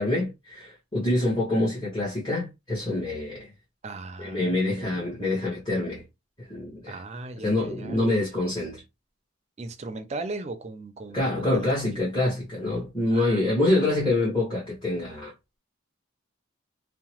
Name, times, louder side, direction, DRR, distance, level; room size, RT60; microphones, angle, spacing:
voice 1, 0.0-3.5 4.2-6.0 6.4-7.0 7.4-8.8 11.1-15.3, left 2 dB, 25° left, 1.2 m, -26 dB
voice 2, 3.8-5.1 6.8-8.3 9.6-12.0 13.1-13.6, right 2 dB, 35° right, 0.4 m, -38 dB
2.8 x 2.0 x 2.9 m
head